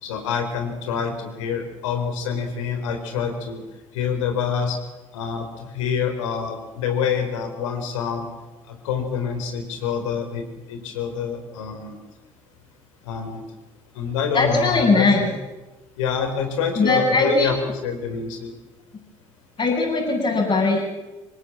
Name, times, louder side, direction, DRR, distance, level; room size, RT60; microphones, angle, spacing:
voice 1, 0.0-3.6 3.9-4.8 5.1-8.3 8.7-10.4 10.7-12.0 13.1-13.4 13.9-15.3 16.0-17.6 17.8-18.5, left 6 dB, 70° left, 5 dB, 4.1 m, -26 dB
voice 2, 14.3-15.2 16.8-17.5 19.6-20.8, left 3 dB, 40° left, -4 dB, 7.4 m, -19 dB
25.5 x 20.5 x 7.6 m, 1.1 s
figure-of-eight pair, 50°, 17 cm